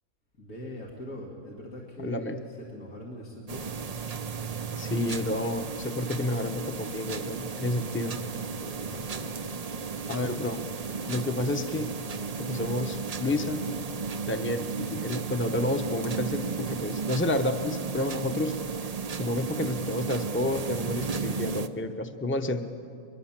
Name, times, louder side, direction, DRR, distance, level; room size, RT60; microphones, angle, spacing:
voice 1, 0.4-3.8 8.6-9.4, left 1 dB, 90° left, -4 dB, 2.9 m, -42 dB
voice 2, 2.0-2.4 4.8-8.2 10.1-10.6 11.1-11.9 12.4-13.6 14.3-18.6 19.1-22.6, left 1 dB, 10° left, 7 dB, 0.8 m, -30 dB
sound 1, 3.5-21.7, right 5 dB, 45° right, 0.5 m, -34 dB
22.5 x 22.5 x 7.5 m, 2.4 s
omnidirectional pair, 1.5 m